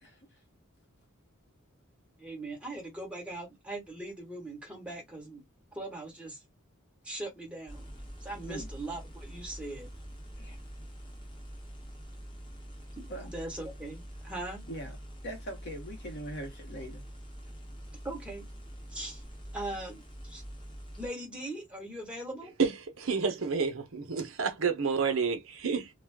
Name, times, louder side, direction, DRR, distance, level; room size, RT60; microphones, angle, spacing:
voice 1, 0.0-0.4 8.5-8.7 10.4-10.6 13.1-13.3 14.7-15.0 15.2-17.1, right 1 dB, 50° left, 1.0 m, -41 dB
voice 2, 2.2-5.4 5.7-6.4 7.0-7.9 8.2-9.9 12.9-14.6 18.0-18.5 18.9-19.2 19.5-20.4 21.0-22.5, right 1 dB, 5° right, 1.3 m, -40 dB
sound 1, 7.7-21.1, equal, 25° left, 0.9 m, -45 dB
voice 3, 22.6-25.9, right 5 dB, 65° right, 0.7 m, -29 dB
2.4 x 2.3 x 3.4 m
head